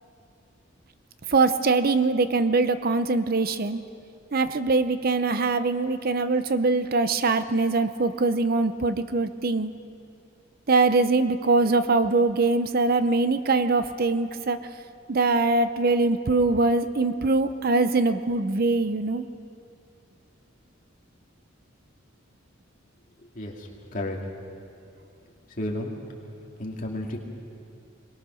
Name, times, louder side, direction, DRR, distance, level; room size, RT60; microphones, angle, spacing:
voice 1, 1.3-3.8 4.3-9.7 10.7-14.6 15.1-19.2, right 3 dB, 50° right, 11 dB, 0.6 m, -23 dB
voice 2, 23.3-24.2 25.6-26.0 26.6-27.2, left 1 dB, 40° left, 0 dB, 2.5 m, -32 dB
22.5 x 20.0 x 6.3 m, 2.5 s
head